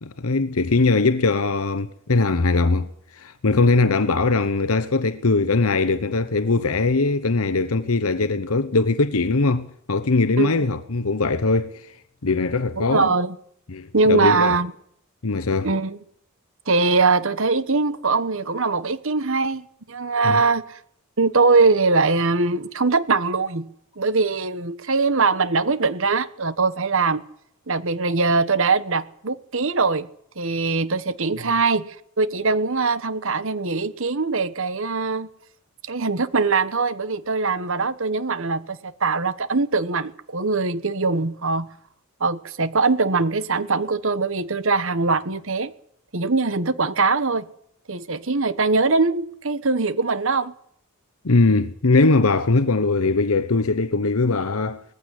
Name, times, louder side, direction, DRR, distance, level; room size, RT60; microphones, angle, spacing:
voice 1, 0.0-11.9 12.2-13.1 13.7-14.6 15.2-15.7 20.2-20.4 51.2-54.8, left 3 dB, 75° left, 1.0 m, -21 dB
voice 2, 12.8-13.4 13.9-14.7 15.6-16.0 16.7-20.8 21.2-23.7 24.0-27.2 27.7-30.1 30.4-31.9 32.2-35.3 35.9-41.7 42.2-45.7 46.1-47.5 47.9-50.5, right 4 dB, 65° right, 1.3 m, -22 dB
20.0 x 15.5 x 9.9 m
head